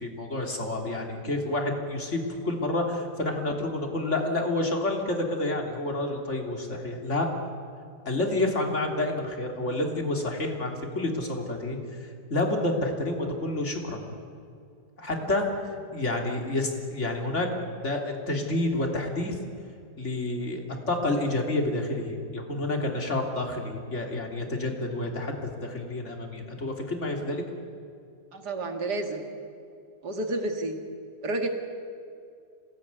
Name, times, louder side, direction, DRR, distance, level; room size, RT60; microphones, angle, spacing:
voice 1, 0.0-7.3 8.1-11.8 12.3-14.0 15.0-15.5 15.9-17.5 17.8-19.4 20.0-20.6 20.9-27.4, left 2 dB, 35° left, 2 dB, 3.3 m, -29 dB
voice 2, 28.3-29.2 30.0-30.8 31.2-31.5, right 2 dB, 60° right, 4 dB, 2.8 m, -30 dB
27.5 x 18.5 x 9.5 m, 2.4 s
omnidirectional pair, 2.0 m